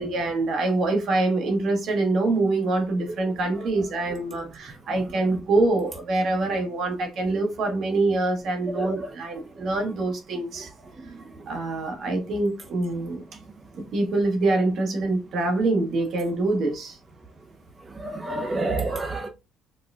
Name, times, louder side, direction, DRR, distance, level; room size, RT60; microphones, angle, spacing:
voice 1, 0.0-10.7 11.5-13.2 13.7-17.0 18.3-18.7, right 2 dB, 60° right, 1.0 m, -25 dB
voice 2, 18.0-19.3, right 3 dB, 25° right, 0.6 m, -28 dB
4.2 x 2.2 x 2.3 m
cardioid pair, 90°, 0 cm